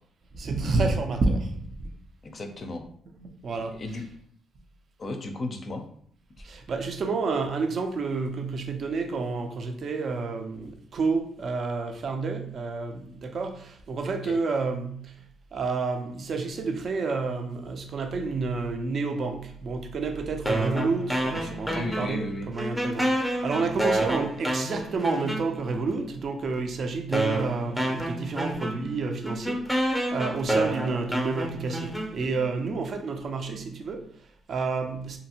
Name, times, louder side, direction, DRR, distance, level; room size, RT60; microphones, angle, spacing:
voice 1, 0.3-1.9 3.2-3.8 6.4-15.3 15.5-35.2, right 4 dB, 55° right, 4 dB, 0.5 m, -30 dB
voice 2, 2.2-2.8 3.7-4.0 5.0-5.8 14.2-14.4 21.7-22.5, left 2 dB, 40° left, 5 dB, 0.4 m, -34 dB
sound 1, 20.5-22.3 22.6-25.8 26.5-26.6 27.1-32.5, right 1 dB, 5° right, 0.6 m, -29 dB
2.7 x 2.5 x 2.8 m, 0.62 s
cardioid pair, 90°, 0 cm